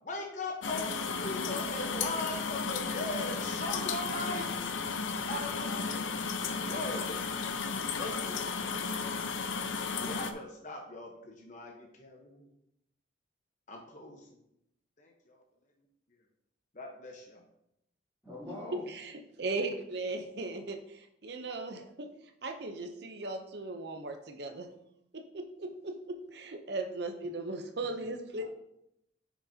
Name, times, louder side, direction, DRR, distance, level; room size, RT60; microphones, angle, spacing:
voice 1, 0.0-4.4 5.2-6.0 6.7-7.4 8.0-8.5 10.0-12.5 13.7-14.3 16.7-17.4, left 1 dB, 40° left, 0 dB, 1.0 m, -39 dB
sound 1, 0.6-10.3, left 5 dB, 80° left, 0.6 m, -34 dB
voice 2, 18.2-18.8 28.0-28.4, left 2 dB, 5° right, -13 dB, 3.1 m, -44 dB
voice 3, 18.9-22.1 22.4-24.7 25.1-28.4, right 2 dB, 55° right, 5 dB, 0.7 m, -38 dB
9.7 x 6.1 x 2.8 m, 0.80 s
head